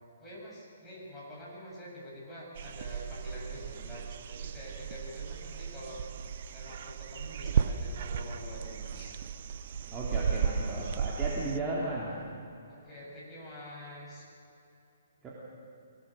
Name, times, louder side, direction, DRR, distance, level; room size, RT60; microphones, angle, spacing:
voice 1, 0.2-6.0 6.5-9.1 12.7-14.3, equal, 5° left, -7 dB, 7.3 m, -46 dB
sound 1, 2.5-11.6, right 7 dB, 50° right, 0.9 m, -35 dB
voice 2, 9.9-12.2 15.2-15.3, right 2 dB, 15° right, -6 dB, 3.1 m, -35 dB
24.5 x 17.5 x 7.7 m, 2.7 s
hypercardioid pair, 165°, 0 cm